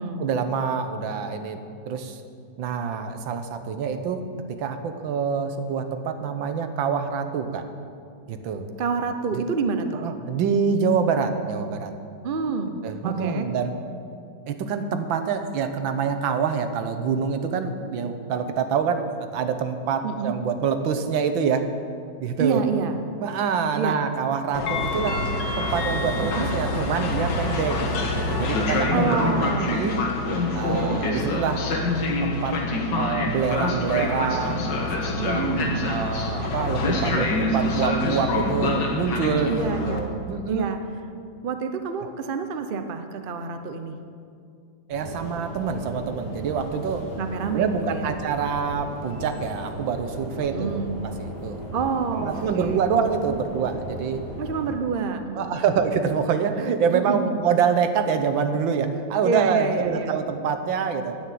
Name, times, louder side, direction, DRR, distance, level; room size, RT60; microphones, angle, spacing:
voice 1, 0.2-1.6 1.9-2.2 2.6-7.6 8.3-8.7 9.3-9.4 9.9-11.9 12.8-13.8 14.5-21.7 22.2-22.6 23.2-25.2 25.6-27.8 28.1-30.0 30.5-31.7 32.2-32.6 32.9-35.4 35.9-40.7 44.9-47.2 47.5-50.8 51.2-51.6 52.2-54.2 55.4-61.2, right 6 dB, 80° right, 8 dB, 1.6 m, -26 dB
voice 2, 8.8-10.0 12.2-12.7 13.0-13.5 20.0-20.4 22.4-23.0 23.8-24.0 26.2-26.5 28.9-29.9 30.7-31.0 35.2-35.8 39.5-40.0 40.5-40.8 41.4-44.0 47.1-48.1 50.4-50.9 51.7-52.9 54.4-55.6 56.9-57.3 59.2-60.2, right 5 dB, 55° right, 7 dB, 0.5 m, -28 dB
Train, 24.5-40.0, left 2 dB, 65° left, 2.0 m, -25 dB
sound 1, 44.9-54.8, right 1 dB, 80° left, 4.9 m, -36 dB
10.0 x 8.5 x 9.1 m, 2.3 s
omnidirectional pair, 2.1 m